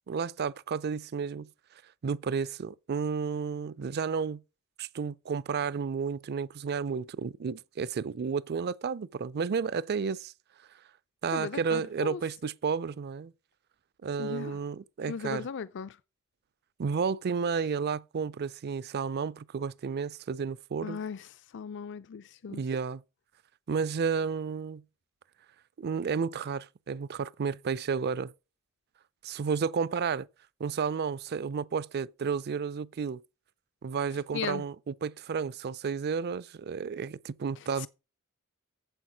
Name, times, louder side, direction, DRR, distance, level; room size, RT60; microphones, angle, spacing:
voice 1, 0.1-1.5 2.0-4.4 4.8-10.3 11.2-13.3 14.0-15.5 16.8-21.0 22.5-23.0 23.7-24.8 25.8-28.3 29.2-30.3 30.6-33.2 33.8-37.9, right 6 dB, 50° right, 0.4 m, -32 dB
voice 2, 11.3-12.2 14.2-14.6 15.1-16.0 20.8-21.3 21.5-22.6 34.3-34.6 37.8-37.9, left 6 dB, 55° left, 0.4 m, -37 dB
8.0 x 7.7 x 6.1 m
head